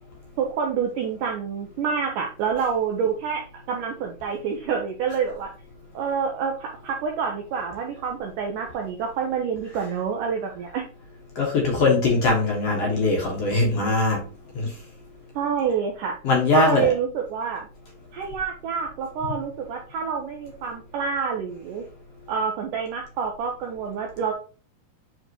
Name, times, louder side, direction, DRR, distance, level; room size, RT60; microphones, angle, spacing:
voice 1, 0.4-5.5 5.9-10.8 15.4-16.2 16.5-17.7 18.1-21.8 22.3-24.3, right 6 dB, 75° right, 2 dB, 1.9 m, -27 dB
voice 2, 11.4-14.2 14.6-14.7 16.2-16.9, left 3 dB, 50° left, -1 dB, 2.0 m, -21 dB
7.9 x 4.2 x 3.0 m, 0.37 s
omnidirectional pair, 4.7 m